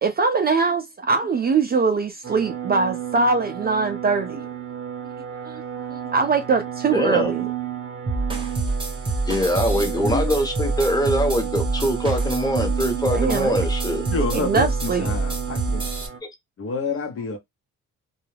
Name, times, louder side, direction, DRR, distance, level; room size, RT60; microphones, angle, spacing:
voice 1, 0.0-4.5 5.5-7.5 13.1-13.7 14.3-15.1, right 4 dB, 30° right, 0.4 m, -22 dB
sound 1, 2.2-16.2, right 9 dB, 50° right, 0.8 m, -33 dB
voice 2, 6.9-7.3 9.3-14.1 16.2-16.3, equal, 10° left, 0.9 m, -23 dB
sound 2, 8.1-16.1, right 3 dB, 15° right, 0.8 m, -26 dB
voice 3, 14.1-14.7 15.0-15.8 16.6-17.4, left 3 dB, 45° left, 0.8 m, -28 dB
2.3 x 2.0 x 3.1 m
cardioid pair, 90°, 30 cm